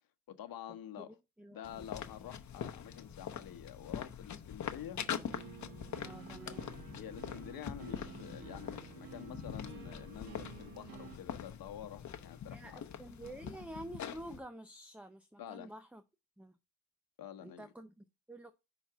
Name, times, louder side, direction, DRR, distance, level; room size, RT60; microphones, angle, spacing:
voice 1, 0.3-1.1 1.5-5.0 6.4-6.5 7.0-13.0 15.4-15.7 17.2-17.7, left 10 dB, 90° left, 1.0 m, -48 dB
voice 2, 1.4-1.9 6.0-6.7 12.5-16.0 16.4-16.6 17.4-18.5, right 1 dB, 5° right, 0.6 m, -49 dB
sound 1, 1.6-14.4, left 8 dB, 55° left, 0.9 m, -44 dB
sound 2, 5.0-11.2, right 7 dB, 90° right, 1.7 m, -51 dB
5.7 x 4.0 x 6.0 m
cardioid pair, 105°, 34 cm